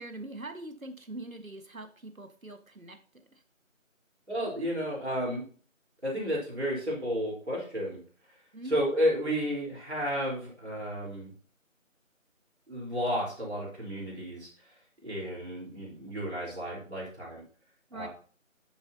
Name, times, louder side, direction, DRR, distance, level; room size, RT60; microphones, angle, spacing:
voice 1, 0.0-3.0 3.3-3.4 8.5-8.8 17.9-18.1, right 2 dB, 85° right, 7 dB, 1.7 m, -42 dB
voice 2, 4.3-5.4 6.0-8.0 8.6-11.3 12.7-14.7 15.0-17.4 17.9-18.1, equal, 55° right, -5 dB, 3.9 m, -32 dB
10.5 x 7.2 x 2.8 m, 0.43 s
figure-of-eight pair, 180°, 40 cm